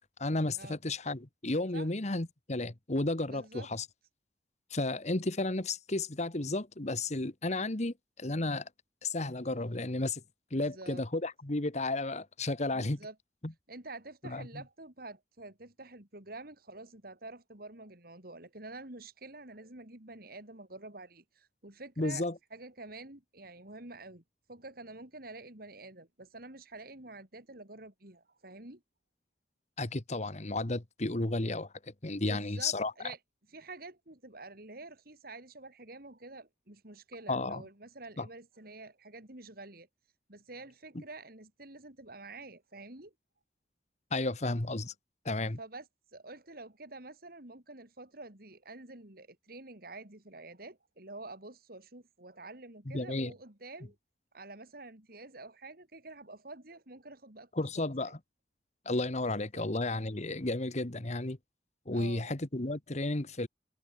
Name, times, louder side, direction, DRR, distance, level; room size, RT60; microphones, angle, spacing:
voice 1, 0.2-3.9 4.7-8.7 9.0-10.2 10.5-13.0 13.4-13.5 14.2-14.4 22.0-22.3 29.8-31.7 32.0-32.9 37.3-37.6 38.2-38.3 44.1-44.9 45.2-45.6 52.9-53.3 57.5-58.2 58.8-61.4 61.9-63.5, left 2 dB, 40° left, 1.5 m, -33 dB
voice 2, 3.3-3.7 10.5-11.0 12.7-13.2 13.7-24.2 24.5-28.8 32.2-33.2 33.5-39.9 40.3-43.1 45.6-45.9 46.1-54.0 54.3-58.1 59.2-59.7 61.9-62.3, right 2 dB, 55° right, 4.2 m, -48 dB
head